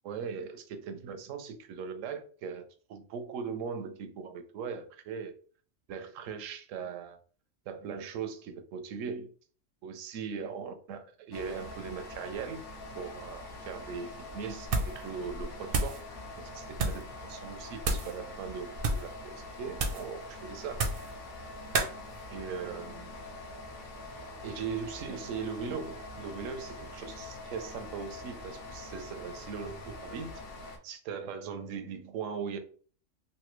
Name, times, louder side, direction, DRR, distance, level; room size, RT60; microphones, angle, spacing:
voice 1, 0.0-5.3 5.9-7.2 7.7-9.3 9.8-12.6 13.0-18.7 18.9-19.3 19.6-20.8 22.3-23.2 24.4-30.3 30.6-32.6, right 6 dB, 75° right, 0.9 m, -39 dB
sound 1, 11.3-30.8, left 2 dB, 55° left, 0.8 m, -44 dB
sound 2, 14.6-15.0 15.3-16.0 16.7-17.1 17.8-18.2 18.7-19.1 19.8-20.1 20.7-21.1 21.7-21.9, right 3 dB, 55° right, 0.7 m, -30 dB
3.2 x 2.6 x 3.0 m
omnidirectional pair, 1.4 m